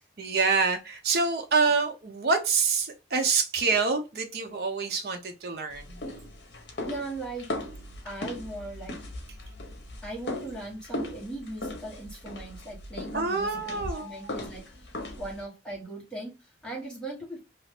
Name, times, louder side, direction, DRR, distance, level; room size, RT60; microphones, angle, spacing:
voice 1, 0.2-6.0 13.1-14.1, right 4 dB, 60° right, 0.6 m, -26 dB
sound 1, 5.7-15.4, left 1 dB, 70° left, 0.7 m, -38 dB
voice 2, 6.8-7.5 8.0-9.0 10.0-14.7 15.1-17.4, right 2 dB, 5° left, 1.1 m, -39 dB
2.6 x 2.4 x 3.4 m
head